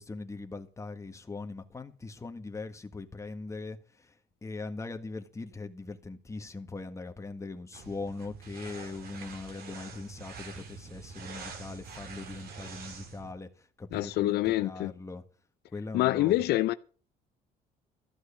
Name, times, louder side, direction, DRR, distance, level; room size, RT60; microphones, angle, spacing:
voice 1, 0.0-4.1 4.4-15.2 15.7-16.4, left 3 dB, 15° left, 1.6 m, -41 dB
sound 1, 7.7-13.3, right 5 dB, 65° right, 3.1 m, -45 dB
voice 2, 13.9-14.9 15.9-16.7, left 16 dB, 75° left, 0.5 m, -26 dB
14.0 x 6.2 x 8.5 m
cardioid pair, 110°, 17 cm